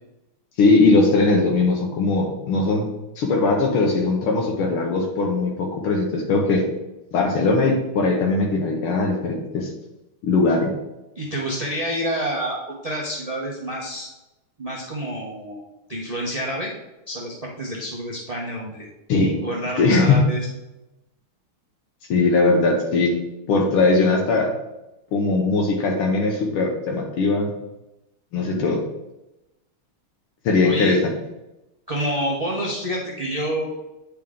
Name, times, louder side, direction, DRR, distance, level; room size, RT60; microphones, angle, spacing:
voice 1, 0.6-2.9 3.2-6.7 7.1-9.7 10.2-10.7 19.1-19.4 19.8-20.2 22.1-23.2 23.5-24.5 25.1-27.5 28.3-28.8 30.4-31.1, left 3 dB, 80° left, 0 dB, 1.8 m, -20 dB
voice 2, 11.2-12.6 12.8-14.1 14.6-15.6 15.9-16.7 17.1-18.9 19.4-20.4 28.3-28.6 30.6-30.9 31.9-33.7, equal, 70° right, -3 dB, 0.3 m, -28 dB
8.8 x 4.5 x 3.6 m, 0.96 s
omnidirectional pair, 2.4 m